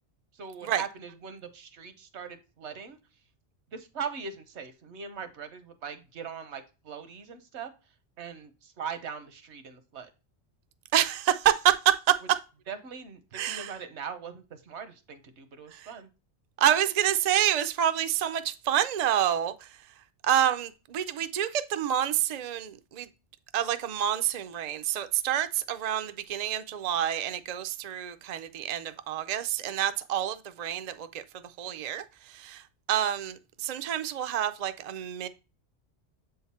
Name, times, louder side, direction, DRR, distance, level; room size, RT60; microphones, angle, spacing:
voice 1, 0.3-3.0 3.7-7.7 8.2-10.1 12.7-16.1, right 6 dB, 75° right, 1.2 m, -40 dB
voice 2, 10.9-12.2 13.3-13.7 15.7-15.9 16.6-19.7 20.2-23.1 23.5-31.2 31.6-32.6 32.9-35.3, right 10 dB, 50° right, 0.5 m, -28 dB
7.8 x 3.8 x 4.2 m
omnidirectional pair, 1.2 m